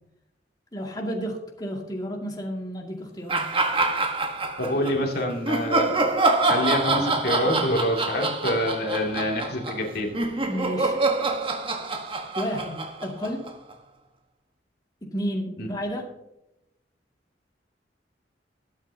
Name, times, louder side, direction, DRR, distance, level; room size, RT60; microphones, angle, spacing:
voice 1, 0.7-3.5 10.5-11.0 12.1-13.5 15.0-16.1, equal, 25° left, -1 dB, 2.4 m, -32 dB
sound 1, 3.3-4.9 5.4-13.7, right 3 dB, 30° right, 1.4 m, -26 dB
voice 2, 4.6-6.1 6.4-10.1 15.6-15.7, left 1 dB, 60° left, 1 dB, 2.6 m, -26 dB
22.0 x 8.7 x 2.9 m, 0.91 s
head